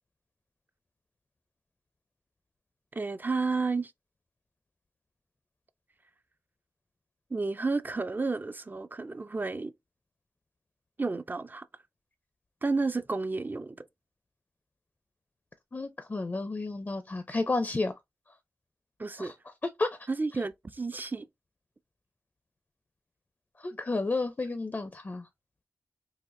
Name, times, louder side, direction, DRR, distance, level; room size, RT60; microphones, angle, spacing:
voice 1, 2.9-3.9 7.3-9.7 11.0-11.7 12.6-13.9 19.0-19.3 20.1-21.3, right 3 dB, 30° right, 0.3 m, -31 dB
voice 2, 15.7-17.9 19.2-19.3 19.8-20.0 23.6-25.3, left 3 dB, 35° left, 0.4 m, -31 dB
4.0 x 2.4 x 2.5 m
wide cardioid pair, 70°, 6 cm